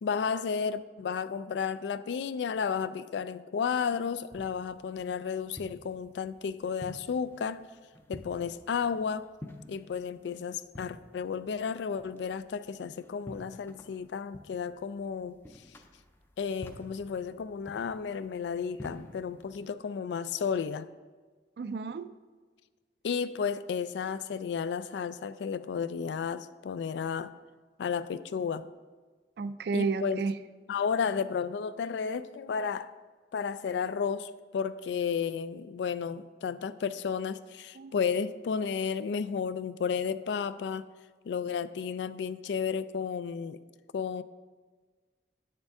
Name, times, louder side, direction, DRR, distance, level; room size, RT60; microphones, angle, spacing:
voice 1, 0.0-7.6 8.1-9.2 9.7-15.4 16.4-20.9 23.0-27.3 27.8-28.7 29.7-30.2 30.7-32.9 33.3-40.9 41.3-43.6 43.9-44.2, left 6 dB, 80° left, 15 dB, 0.3 m, -32 dB
sound 1, 3.8-19.7, left 1 dB, 10° left, 0.4 m, -51 dB
voice 2, 21.6-22.1 29.4-30.4 37.8-37.9, right 4 dB, 60° right, 13 dB, 0.3 m, -31 dB
8.7 x 6.6 x 3.5 m, 1.4 s
head